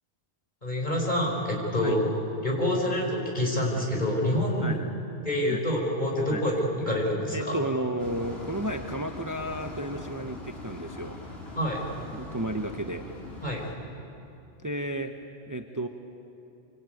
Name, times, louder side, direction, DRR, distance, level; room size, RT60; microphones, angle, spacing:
voice 1, 0.6-2.1 2.4-4.8 5.2-7.6 11.6-11.8 13.4-13.6, left 1 dB, 45° left, -1 dB, 5.4 m, -27 dB
voice 2, 4.6-5.0 5.5-5.6 6.3-6.4 7.3-11.2 12.1-13.0 14.6-15.1 15.5-15.9, right 1 dB, 20° right, 5 dB, 1.0 m, -32 dB
sound 1, 8.0-13.7, left 2 dB, 70° left, 3.9 m, -41 dB
25.5 x 25.0 x 9.3 m, 2.8 s
omnidirectional pair, 1.1 m